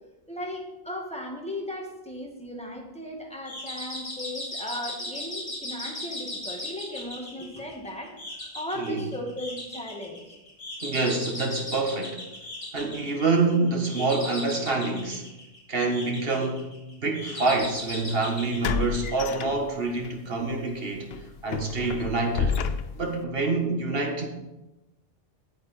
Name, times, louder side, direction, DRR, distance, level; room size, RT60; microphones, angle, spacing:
voice 1, 0.3-10.3, left 1 dB, 5° left, -1 dB, 1.7 m, -37 dB
sound 1, 3.4-19.5, left 1 dB, 40° left, 4.2 m, -38 dB
voice 2, 10.8-12.2 12.7-15.3 15.7-16.7 17.0-21.1 21.4-22.6 22.9-24.3, right 3 dB, 60° right, 2 dB, 1.7 m, -26 dB
sound 2, 17.5-17.7 18.6-20.1 20.5-20.7 21.1-23.2, left 6 dB, 70° left, 0.8 m, -30 dB
8.8 x 8.5 x 4.3 m, 0.98 s
omnidirectional pair, 1.1 m